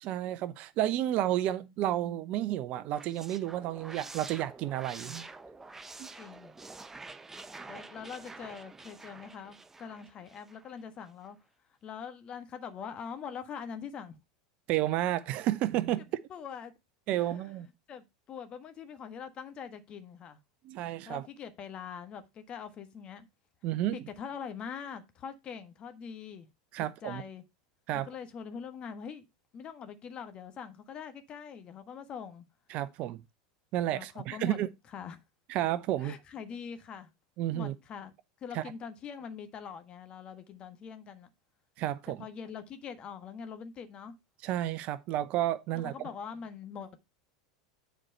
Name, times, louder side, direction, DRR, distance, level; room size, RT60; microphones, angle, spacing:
voice 1, 0.0-5.3 6.0-6.1 14.7-16.1 17.1-17.7 20.6-21.3 23.6-24.0 26.7-27.2 27.9-28.1 32.7-33.2 33.7-34.7 35.5-36.1 37.4-37.7 38.5-38.6 41.8-42.2 44.4-45.9, right 13 dB, 50° right, 0.8 m, -31 dB
sound 1, 2.7-10.8, right 3 dB, 10° right, 0.8 m, -48 dB
voice 2, 6.2-6.5 7.7-11.4 11.8-14.2 16.0-16.1 16.3-16.7 17.1-17.5 17.9-20.4 21.0-23.3 23.9-26.5 26.8-27.4 27.9-29.3 29.5-32.4 33.9-34.6 34.9-35.2 36.0-37.1 37.5-38.1 38.4-41.3 42.2-44.2 45.7-46.9, left 7 dB, 35° left, 1.4 m, -43 dB
7.6 x 4.5 x 5.5 m
hypercardioid pair, 90°, 3 cm